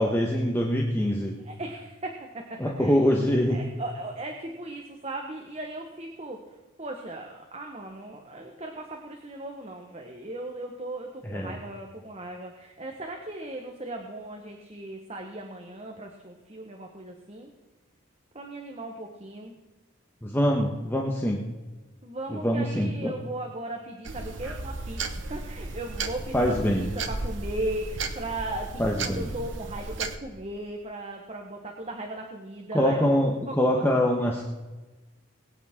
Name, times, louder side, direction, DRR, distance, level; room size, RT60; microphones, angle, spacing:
voice 1, 0.0-1.5 2.6-3.6 11.3-11.5 20.2-21.4 22.3-23.1 26.3-26.9 28.8-29.2 32.7-34.4, equal, 10° left, -1 dB, 1.3 m, -24 dB
voice 2, 1.4-3.0 3.5-6.4 6.8-17.5 18.3-19.6 22.0-33.6, right 2 dB, 30° right, 2 dB, 1.4 m, -37 dB
sound 1, 24.1-30.2, right 3 dB, 65° right, 1.3 m, -34 dB
21.5 x 9.2 x 3.7 m, 1.2 s
head